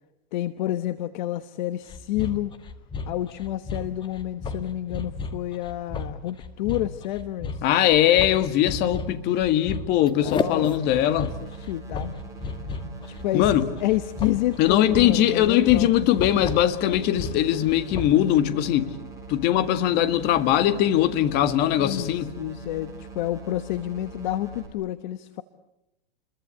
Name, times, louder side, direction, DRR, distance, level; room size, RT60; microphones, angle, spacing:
voice 1, 0.3-2.5 3.1-7.6 10.2-12.1 13.0-15.9 21.8-25.4, left 14 dB, 50° left, 12 dB, 1.2 m, -29 dB
sound 1, 1.9-18.3, left 4 dB, 15° left, 1.7 m, -34 dB
voice 2, 7.6-11.4 13.3-13.7 14.6-18.9 19.3-22.3, left 12 dB, 35° left, 11 dB, 1.9 m, -21 dB
sound 2, 10.2-24.7, right 3 dB, 10° right, 6.4 m, -42 dB
29.5 x 22.5 x 8.4 m, 0.87 s
hypercardioid pair, 145°, 29 cm